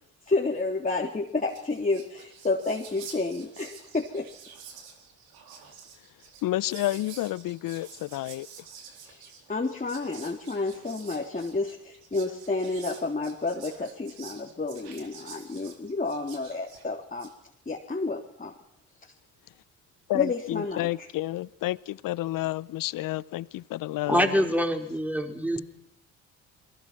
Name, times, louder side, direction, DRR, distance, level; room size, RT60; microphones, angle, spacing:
voice 1, 0.3-4.3 9.0-9.2 9.5-17.3 17.7-18.5 20.1-20.9, left 3 dB, 20° left, 3.5 m, -30 dB
Whispering, 1.1-1.2 1.4-17.4, right 6 dB, 70° right, 4.3 m, -48 dB
voice 2, 6.4-8.5 20.1-24.5, left 16 dB, 60° left, 0.9 m, -30 dB
voice 3, 24.1-25.6, equal, 5° right, 5.0 m, -25 dB
28.5 x 23.0 x 6.1 m
hypercardioid pair, 50°, 37 cm